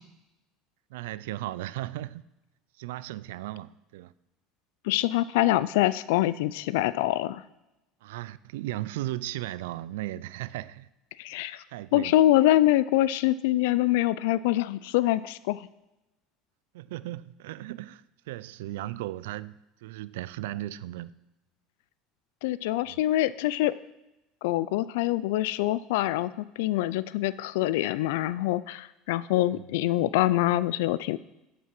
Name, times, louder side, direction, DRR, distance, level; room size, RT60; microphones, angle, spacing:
voice 1, 0.9-2.2 2.8-4.1 8.0-10.9 11.7-12.1 16.7-21.1 22.9-23.0 29.5-29.6, right 15 dB, 90° right, 0.3 m, -36 dB
voice 2, 4.8-7.4 11.2-11.6 11.9-15.7 22.4-23.7 24.4-31.2, left 15 dB, 85° left, 0.3 m, -25 dB
8.2 x 7.6 x 6.0 m
supercardioid pair, 120°, 0 cm